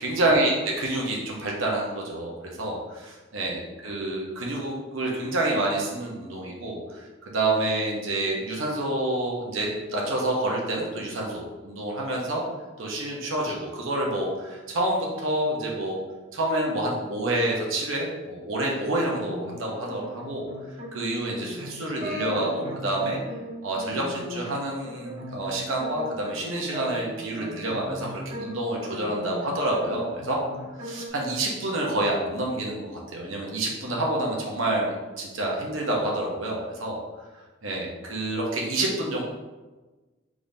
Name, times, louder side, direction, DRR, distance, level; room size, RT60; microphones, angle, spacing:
voice 1, 0.0-12.4 12.8-16.0 16.3-20.5 20.9-23.2 23.6-30.4 30.8-37.0 37.6-39.2, right 1 dB, 85° right, -2 dB, 0.9 m, -28 dB
sound 1, 18.9-29.4 29.7-31.1, equal, 35° right, 1.4 m, -38 dB
5.2 x 3.7 x 2.7 m, 1.2 s
head